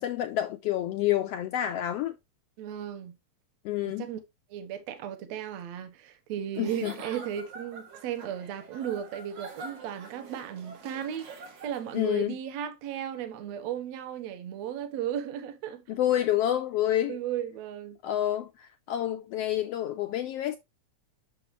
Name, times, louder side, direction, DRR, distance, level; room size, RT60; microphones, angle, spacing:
voice 1, 0.0-2.1 3.6-4.1 6.6-6.9 11.9-12.4 15.9-17.2 18.0-20.6, left 12 dB, 80° left, 1.4 m, -28 dB
voice 2, 2.6-3.1 3.8-4.2 4.5-11.3 11.6-16.2 17.1-18.0, right 10 dB, 70° right, 2.1 m, -35 dB
Giggle / Chuckle chortle, 6.5-12.1, right 3 dB, 90° right, 3.1 m, -45 dB
7.7 x 6.2 x 3.0 m
omnidirectional pair, 3.3 m